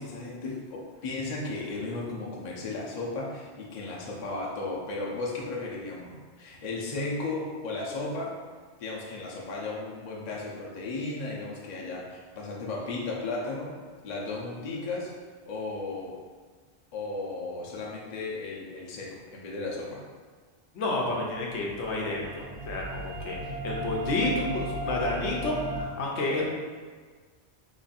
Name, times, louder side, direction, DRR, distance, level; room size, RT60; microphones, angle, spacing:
voice 1, 0.0-8.4 8.8-15.1 15.5-16.2 16.9-20.0, left 3 dB, 45° left, -4 dB, 0.7 m, -35 dB
voice 2, 20.7-26.5, left 2 dB, 80° left, -2 dB, 1.0 m, -30 dB
sound 1, 21.5-25.8, right 1 dB, 85° right, 1.0 m, -35 dB
3.1 x 2.5 x 4.0 m, 1.5 s
omnidirectional pair, 1.1 m